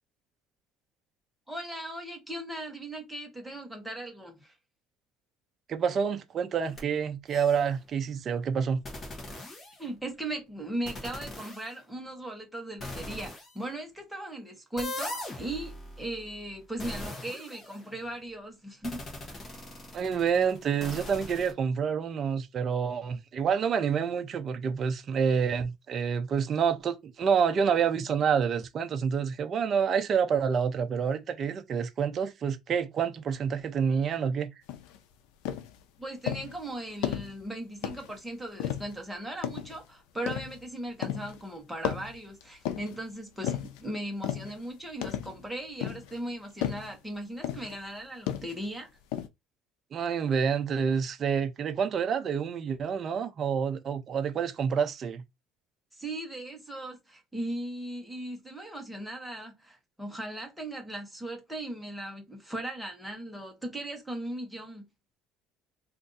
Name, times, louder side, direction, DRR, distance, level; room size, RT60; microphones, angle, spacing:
voice 1, 1.5-4.5 9.8-19.0 36.0-48.9 55.9-64.9, right 1 dB, ahead, 0.9 m, -38 dB
voice 2, 5.7-8.8 19.9-34.5 49.9-55.2, right 7 dB, 30° right, 0.4 m, -28 dB
sound 1, 6.6-6.8 7.3-7.7 8.8-10.1 10.9-11.7 12.8-13.6 14.8-18.1 18.8-21.5, left 1 dB, 25° left, 0.9 m, -41 dB
sound 2, 34.7-35.0 35.5-35.8 36.3-36.6 37.0-37.4 37.8-38.2 38.6-39.0 39.4-39.8 40.3-40.6 41.0-41.4 41.8-43.0 43.4-43.8 44.2-44.6 45.0-45.4 45.8-46.2 46.6-46.9 47.4-47.8 48.3-48.7 49.1-49.3, left 10 dB, 90° left, 0.5 m, -33 dB
2.5 x 2.4 x 3.9 m
cardioid pair, 165°, 0 cm